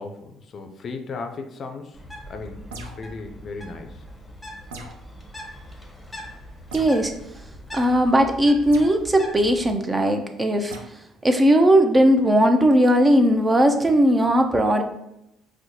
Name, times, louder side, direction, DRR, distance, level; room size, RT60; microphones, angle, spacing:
voice 1, 0.0-2.0 2.3-4.0, left 4 dB, 50° left, 5 dB, 0.4 m, -36 dB
Bird, 1.9-9.7, equal, 10° left, 0.8 m, -41 dB
sound 1, 2.7-3.2 4.7-5.1 6.7-7.0 8.7-8.9 10.7-10.9, right 2 dB, 90° right, 0.4 m, -39 dB
voice 2, 6.7-7.1 7.7-10.7 11.2-14.8, equal, 25° right, 6 dB, 0.5 m, -18 dB
4.4 x 2.1 x 2.7 m, 0.82 s
hypercardioid pair, 65°, 0 cm